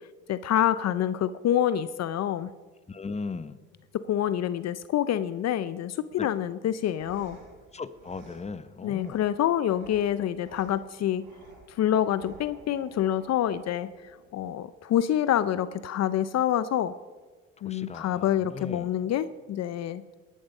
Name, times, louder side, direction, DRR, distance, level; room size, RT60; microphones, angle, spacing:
voice 1, 0.3-2.5 4.1-7.4 8.8-11.2 11.7-13.9 14.3-16.9 17.6-20.1, left 11 dB, 55° left, 15 dB, 0.6 m, -27 dB
voice 2, 2.9-3.6 6.2-6.3 7.7-9.2 17.6-18.9, left 4 dB, 20° left, 14 dB, 0.9 m, -37 dB
sound 1, 6.7-14.7, right 2 dB, 85° right, 4.9 m, -54 dB
19.0 x 11.0 x 5.4 m, 1.4 s
supercardioid pair, 75°, 31 cm